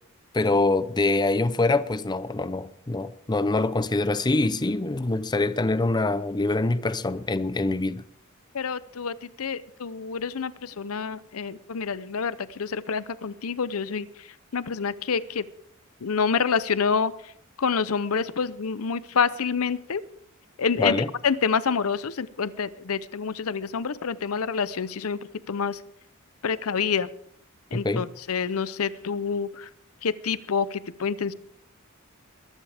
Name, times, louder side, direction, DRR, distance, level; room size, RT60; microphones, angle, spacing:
voice 1, 0.3-8.0 20.8-21.1 27.7-28.0, left 2 dB, 20° left, 0.5 m, -24 dB
voice 2, 8.5-14.3 14.5-15.4 16.0-17.1 17.6-20.0 20.6-25.2 25.5-25.8 26.4-27.1 27.7-29.7 30.0-31.3, left 6 dB, 80° left, 0.7 m, -27 dB
22.0 x 12.0 x 3.5 m
head